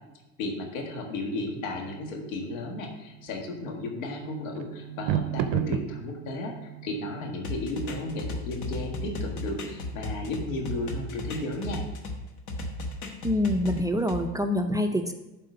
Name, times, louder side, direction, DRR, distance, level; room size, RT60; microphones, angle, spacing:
voice 1, 0.4-11.8, left 2 dB, 85° left, 2 dB, 1.7 m, -34 dB
sound 1, 0.5-11.3, right 10 dB, 55° right, 0.6 m, -37 dB
sound 2, 7.4-12.2 12.5-14.2, left 2 dB, 45° left, 1.3 m, -35 dB
voice 2, 13.2-15.1, left 1 dB, 10° right, 5 dB, 0.5 m, -26 dB
7.9 x 4.3 x 6.7 m, 0.99 s
supercardioid pair, 90°, 39 cm